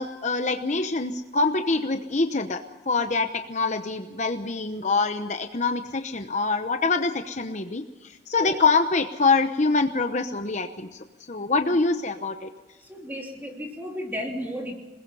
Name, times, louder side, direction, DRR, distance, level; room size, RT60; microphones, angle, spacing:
voice 1, 0.0-2.6 2.9-12.5, left 3 dB, 35° left, 7 dB, 0.9 m, -25 dB
voice 2, 12.9-14.8, equal, 10° right, 1 dB, 3.1 m, -34 dB
27.0 x 20.5 x 5.5 m, 1.2 s
head